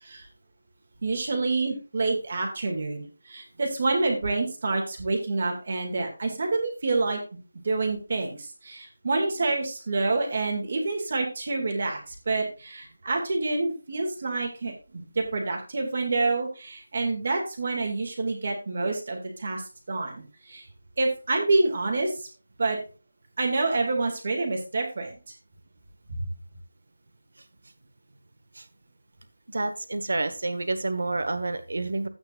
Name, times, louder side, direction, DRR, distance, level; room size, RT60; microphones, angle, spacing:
voice 1, 1.0-7.2 7.6-19.6 19.9-20.6 21.0-22.3 22.6-22.8 23.4-25.2 26.1-26.3, right 3 dB, 35° right, 3 dB, 2.2 m, -27 dB
voice 2, 29.5-32.1, right 2 dB, 65° right, 10 dB, 1.4 m, -29 dB
12.5 x 8.8 x 2.5 m, 0.33 s
figure-of-eight pair, 180°, 0 cm